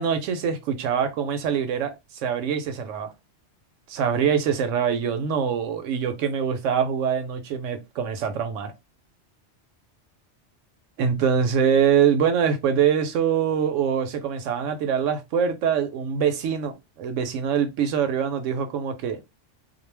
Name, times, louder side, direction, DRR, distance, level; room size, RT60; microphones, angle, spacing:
voice 1, 0.0-1.9 2.2-3.1 3.9-8.7 11.0-19.2, right 7 dB, 90° right, 1.0 m, -24 dB
2.4 x 2.1 x 3.2 m
omnidirectional pair, 1.3 m